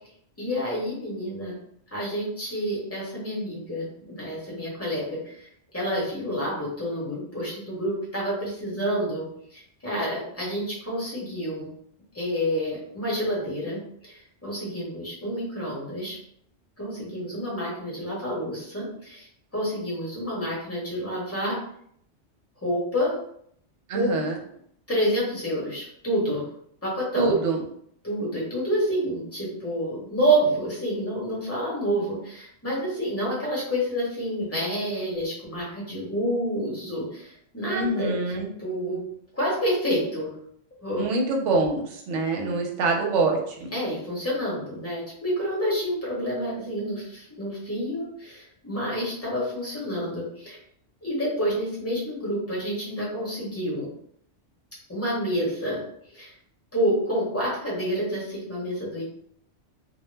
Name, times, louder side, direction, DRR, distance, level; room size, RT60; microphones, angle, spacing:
voice 1, 0.4-1.5 1.9-5.5 5.7-11.7 12.1-16.2 16.8-19.3 19.5-21.6 22.6-23.1 23.9-24.1 24.9-26.5 26.8-27.3 28.0-38.1 38.6-39.0 39.3-40.3 40.8-41.0 43.7-50.6 51.0-53.9 54.9-55.8 56.1-56.3 56.7-59.1, equal, 15° left, -6 dB, 0.9 m, -28 dB
voice 2, 23.9-24.3 27.1-27.6 37.6-38.5 41.0-43.7, right 3 dB, 80° right, 2 dB, 0.9 m, -25 dB
2.2 x 2.0 x 3.2 m, 0.67 s
omnidirectional pair, 1.2 m